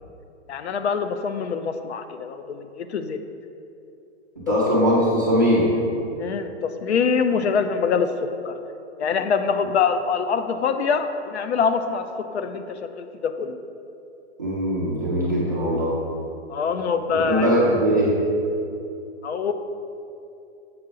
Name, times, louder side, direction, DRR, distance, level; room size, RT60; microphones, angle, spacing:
voice 1, 0.5-3.2 4.5-4.6 6.2-8.6 9.0-13.6 16.5-17.5 19.2-19.5, left 6 dB, 65° left, 9 dB, 0.6 m, -24 dB
voice 2, 4.5-5.7 14.4-15.9 17.3-18.2, equal, 15° right, -9 dB, 0.4 m, -20 dB
7.7 x 5.9 x 3.8 m, 2.7 s
hypercardioid pair, 175°, 36 cm